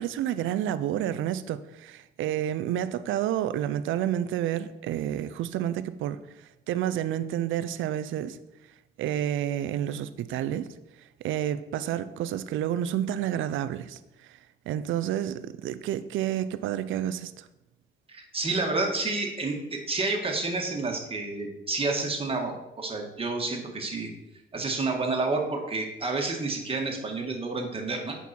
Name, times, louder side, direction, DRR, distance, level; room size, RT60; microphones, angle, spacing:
voice 1, 0.0-8.4 9.0-10.7 11.0-14.4 14.7-17.5, right 11 dB, 85° right, 0.5 m, -30 dB
voice 2, 18.1-24.1 24.5-28.2, right 3 dB, 30° right, 1.9 m, -29 dB
8.3 x 5.5 x 4.4 m
cardioid pair, 90°, 20 cm